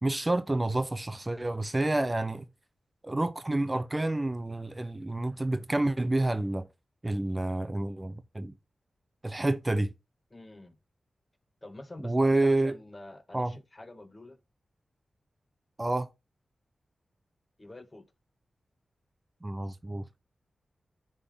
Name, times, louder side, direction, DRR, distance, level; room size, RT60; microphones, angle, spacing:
voice 1, 0.0-2.4 3.0-6.7 7.0-8.5 9.2-9.9 12.0-12.8 13.3-13.5 15.8-16.1 19.4-20.0, right 2 dB, 25° right, 0.7 m, -28 dB
voice 2, 10.3-10.8 11.6-14.4 17.6-18.0, left 2 dB, 30° left, 1.5 m, -46 dB
9.8 x 3.8 x 3.6 m
cardioid pair, 60°, 0 cm